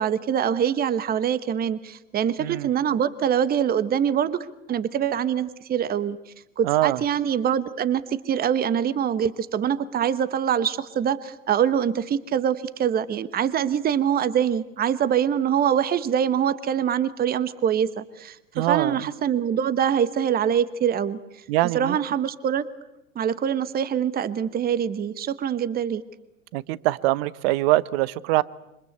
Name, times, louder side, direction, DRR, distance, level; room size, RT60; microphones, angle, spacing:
voice 1, 0.0-6.2 6.6-21.2 21.7-22.7 23.1-26.0, right 9 dB, 20° right, 16 dB, 1.2 m, -24 dB
voice 2, 6.6-7.0 18.5-19.0 21.5-22.0 26.5-28.4, right 18 dB, 45° right, 20 dB, 1.0 m, -23 dB
27.5 x 25.5 x 8.1 m, 0.92 s
figure-of-eight pair, 95°, 42 cm